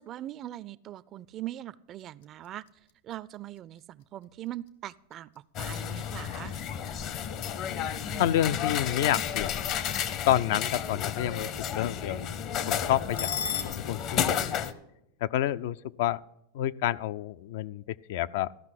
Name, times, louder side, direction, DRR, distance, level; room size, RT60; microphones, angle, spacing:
voice 1, 0.0-2.6 3.0-5.3 5.6-6.5, right 13 dB, 40° right, 19 dB, 0.4 m, -41 dB
sound 1, 1.8-13.6, left 7 dB, 85° left, 1.2 m, -44 dB
sound 2, 5.6-14.7, left 8 dB, 45° left, 0.7 m, -32 dB
voice 2, 8.2-9.5 10.3-12.3 12.7-13.3 13.6-14.6 15.2-16.2 16.5-18.5, left 12 dB, 65° left, 15 dB, 0.3 m, -29 dB
14.5 x 5.7 x 7.5 m, 0.84 s
hypercardioid pair, 115°, 0 cm